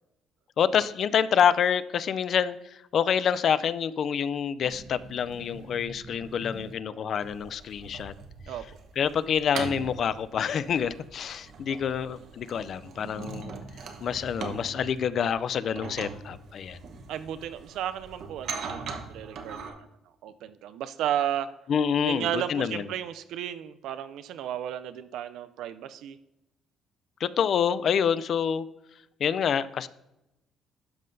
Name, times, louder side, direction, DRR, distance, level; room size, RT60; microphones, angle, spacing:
voice 1, 0.6-8.1 9.0-13.5 14.0-16.8 21.7-22.9 27.2-28.7 29.2-29.9, left 7 dB, 50° left, 16 dB, 0.3 m, -27 dB
sound 1, 4.6-6.7 7.2-19.7, right 4 dB, 60° right, 0.9 m, -41 dB
voice 2, 17.1-19.9 20.2-21.5 22.0-26.2, right 10 dB, 75° right, 12 dB, 0.4 m, -33 dB
12.5 x 5.6 x 2.6 m, 0.92 s
cardioid pair, 140°, 0 cm